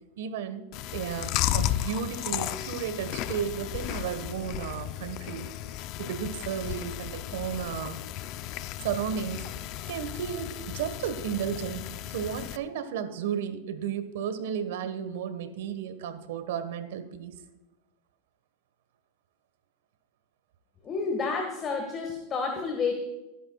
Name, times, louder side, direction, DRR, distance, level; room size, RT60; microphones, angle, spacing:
voice 1, 0.2-0.6 0.9-5.5 6.0-8.0 8.8-9.4 9.9-17.3, right 8 dB, 80° right, 10 dB, 1.4 m, -33 dB
Chewing mastication, 0.7-12.6, left 13 dB, 50° left, 0.6 m, -34 dB
voice 2, 20.8-22.9, left 4 dB, 30° left, 3 dB, 1.7 m, -30 dB
18.5 x 10.0 x 2.4 m, 1.0 s
supercardioid pair, 125°, 0 cm